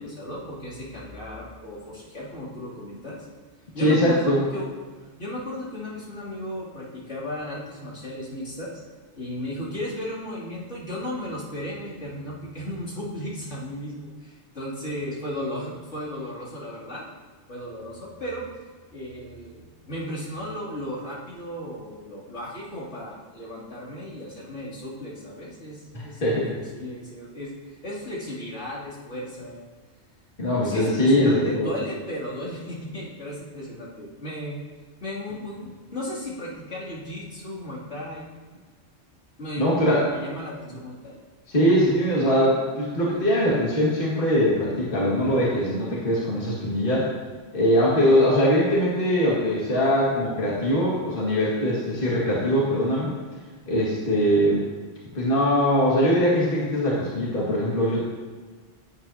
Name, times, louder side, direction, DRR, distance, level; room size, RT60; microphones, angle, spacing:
voice 1, 0.0-3.3 3.7-4.8 5.2-8.7 9.2-17.0 17.5-18.4 18.9-29.6 30.6-34.6 35.0-38.3 39.4-41.2, left 1 dB, 75° left, -8 dB, 3.2 m, -35 dB
voice 2, 3.8-4.4 25.9-26.5 30.4-31.7 39.6-40.1 41.5-47.1 47.5-53.1 53.7-54.6 55.1-58.1, equal, 50° left, -6 dB, 2.2 m, -22 dB
16.0 x 8.6 x 2.8 m, 1.4 s
omnidirectional pair, 1.2 m